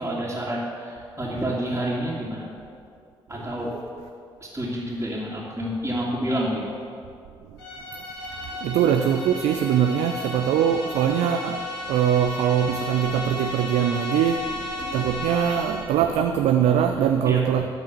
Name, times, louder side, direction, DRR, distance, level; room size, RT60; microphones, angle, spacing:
voice 1, 0.0-2.5 3.3-3.7 4.4-6.7 14.8-15.0 17.2-17.7, equal, 20° right, -9 dB, 2.6 m, -29 dB
sound 1, 7.6-16.0, left 2 dB, 85° left, 1.5 m, -34 dB
voice 2, 8.4-11.6 11.9-17.7, right 9 dB, 65° right, 6 dB, 0.5 m, -22 dB
12.0 x 5.4 x 6.8 m, 2.4 s
hypercardioid pair, 40°, 12 cm